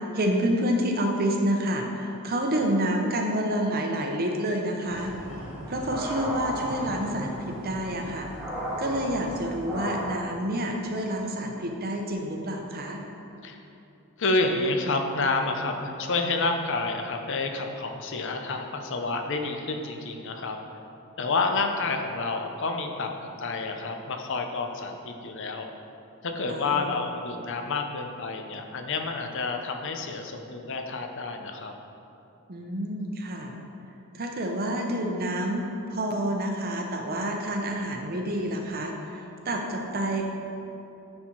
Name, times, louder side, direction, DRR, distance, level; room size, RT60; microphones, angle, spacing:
voice 1, 0.1-5.1 5.7-8.3 8.8-13.0 26.5-26.9 32.5-33.5 34.1-35.6 35.9-40.2, right 1 dB, 45° right, 2 dB, 0.8 m, -28 dB
sound 1, 4.9-10.0, equal, 5° right, 1.6 m, -35 dB
voice 2, 14.2-20.6 21.2-23.1 23.4-25.7 26.2-31.7, left 3 dB, 55° left, 4 dB, 0.7 m, -29 dB
9.8 x 4.3 x 4.6 m, 2.8 s
head